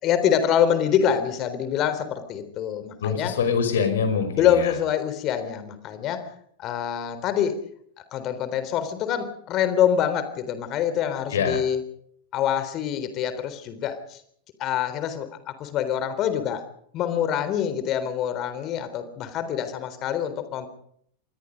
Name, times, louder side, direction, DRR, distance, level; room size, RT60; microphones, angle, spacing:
voice 1, 0.0-3.3 4.3-6.3 6.6-7.6 8.1-11.8 12.3-14.2 14.6-16.6 16.9-20.7, left 9 dB, 35° left, 11 dB, 3.7 m, -25 dB
voice 2, 3.0-4.7 11.3-11.6, left 6 dB, 60° left, 9 dB, 5.5 m, -24 dB
27.0 x 20.5 x 5.3 m, 0.65 s
figure-of-eight pair, 90°, 0 cm